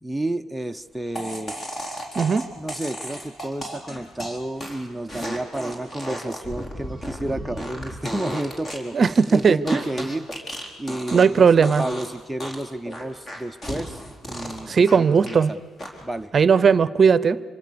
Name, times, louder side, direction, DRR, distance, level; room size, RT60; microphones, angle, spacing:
voice 1, 0.0-1.6 2.6-9.0 9.3-10.3 10.8-15.6 16.0-16.3, right 1 dB, 5° right, 6 dB, 0.7 m, -31 dB
sound 1, 1.2-11.4 11.6-12.1 12.4-15.4 15.8-16.2, equal, 35° left, 4.3 m, -34 dB
voice 2, 8.9-9.8 11.1-11.8 14.7-15.5 16.3-17.4, right 6 dB, 45° right, 17 dB, 0.7 m, -17 dB
25.5 x 24.5 x 6.9 m, 1.4 s
cardioid pair, 90°, 0 cm